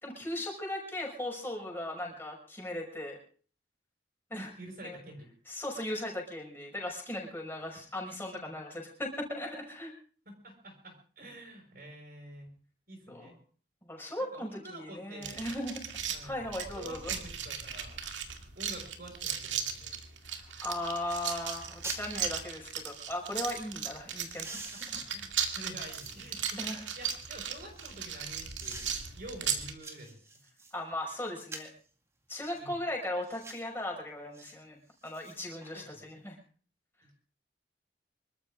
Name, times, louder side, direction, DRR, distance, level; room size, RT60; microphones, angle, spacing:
voice 1, 0.0-3.2 4.3-4.5 4.8-5.0 5.5-9.9 13.1-13.3 13.8-15.8 16.1-17.1 20.2-24.6 24.9-25.0 26.6-26.8 30.7-31.7 32.3-34.8 35.0-36.4, left 1 dB, 10° left, -1 dB, 5.6 m, -38 dB
voice 2, 4.3-5.3 10.3-12.5 12.9-13.3 14.3-15.5 16.1-18.0 18.6-20.0 24.5-30.2 32.5-32.8 35.7-36.2, right 1 dB, 50° right, 1 dB, 5.9 m, -48 dB
sound 1, 15.2-29.7, right 8 dB, 85° right, 2.2 m, -37 dB
sound 2, 20.6-20.7 21.1-21.2 21.5-22.1 22.8-23.6 24.2-26.4 26.9-28.1 28.6-29.1 29.5-30.8 31.4-31.8 32.4-32.6 33.2-33.7 34.3-34.5 34.9-35.7 36.1-36.2, right 2 dB, 15° right, 2.1 m, -47 dB
25.5 x 13.5 x 3.7 m, 0.43 s
head